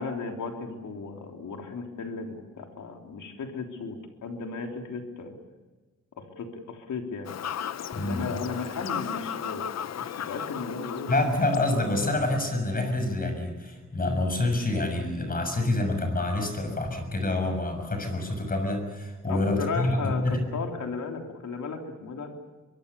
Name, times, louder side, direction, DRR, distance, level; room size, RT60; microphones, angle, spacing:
voice 1, 0.0-5.4 6.2-7.3 8.0-11.2 19.3-22.3, left 4 dB, 80° left, 3 dB, 3.5 m, -35 dB
Fowl / Bird vocalization bird call bird song, 7.2-12.2, left 9 dB, 60° left, 0.8 m, -36 dB
voice 2, 7.9-8.2 11.1-20.5, left 2 dB, 30° left, 6 dB, 6.6 m, -27 dB
24.5 x 23.5 x 7.0 m, 1.3 s
wide cardioid pair, 140°, 30 cm